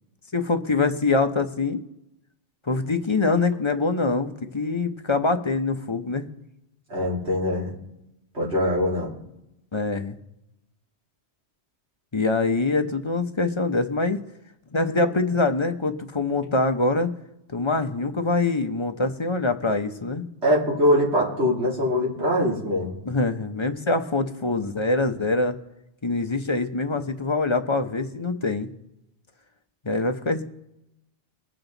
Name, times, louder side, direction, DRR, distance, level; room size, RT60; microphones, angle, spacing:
voice 1, 0.3-1.8 2.7-6.2 9.7-10.2 12.1-14.2 14.7-17.1 17.5-20.2 23.1-25.6 26.0-28.7 29.8-30.4, left 3 dB, 30° left, 6 dB, 0.8 m, -24 dB
voice 2, 6.9-7.7 8.3-9.1 20.4-23.0, left 1 dB, 75° right, -4 dB, 3.5 m, -23 dB
22.0 x 7.7 x 4.0 m, 0.87 s
omnidirectional pair, 1.2 m